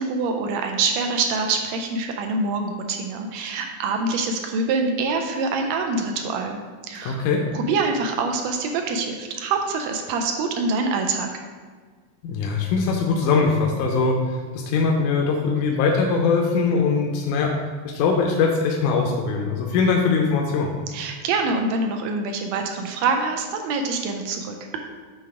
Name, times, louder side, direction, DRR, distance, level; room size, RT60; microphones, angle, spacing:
voice 1, 0.0-7.2 7.5-11.3 20.9-24.5, right 3 dB, 80° right, 4 dB, 1.6 m, -25 dB
voice 2, 7.0-7.4 12.2-17.5 17.8-20.7, left 4 dB, 80° left, 0 dB, 2.0 m, -21 dB
7.8 x 3.3 x 4.8 m, 1.5 s
omnidirectional pair, 3.6 m